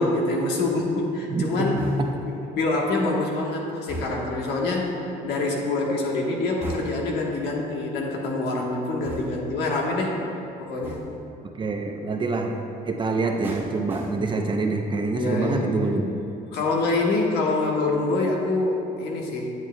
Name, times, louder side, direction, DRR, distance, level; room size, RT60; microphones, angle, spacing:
voice 1, 0.0-1.8 2.2-4.9 5.2-10.1 10.6-11.1 12.0-12.2 15.2-16.1 16.5-19.5, left 2 dB, 85° left, -1 dB, 1.2 m, -25 dB
voice 2, 1.3-1.8 11.6-12.6 12.9-16.2, right 3 dB, 30° right, 3 dB, 0.6 m, -26 dB
sound 1, 1.8-2.3 3.9-4.5 6.6-7.2 9.0-9.6 10.8-11.3 13.4-14.6 14.9-15.3, right 1 dB, 10° right, 1.2 m, -38 dB
9.0 x 8.1 x 2.2 m, 2.8 s
cardioid pair, 110°, 17 cm